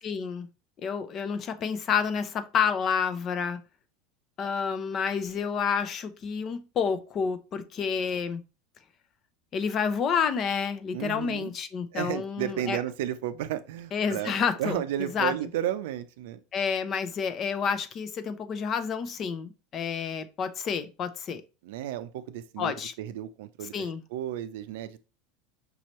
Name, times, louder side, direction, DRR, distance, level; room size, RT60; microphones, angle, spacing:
voice 1, 0.0-0.5 0.8-3.6 4.4-8.4 9.5-12.8 13.9-15.3 16.5-21.4 22.6-22.9 23.7-24.0, left 6 dB, 40° left, 0.6 m, -29 dB
voice 2, 10.9-11.5 11.9-16.4 21.6-25.0, right 12 dB, 75° right, 0.4 m, -33 dB
5.3 x 2.9 x 3.0 m
hypercardioid pair, 100°, 0 cm